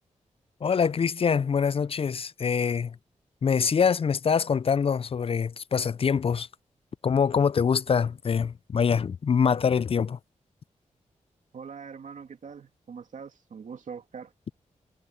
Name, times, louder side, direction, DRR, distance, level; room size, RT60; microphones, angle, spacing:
voice 1, 0.6-2.9 3.4-6.5 7.0-10.2, left 6 dB, 45° left, 0.4 m, -24 dB
voice 2, 11.5-14.3, right 6 dB, 75° right, 2.6 m, -42 dB
cardioid pair, 65°, 13 cm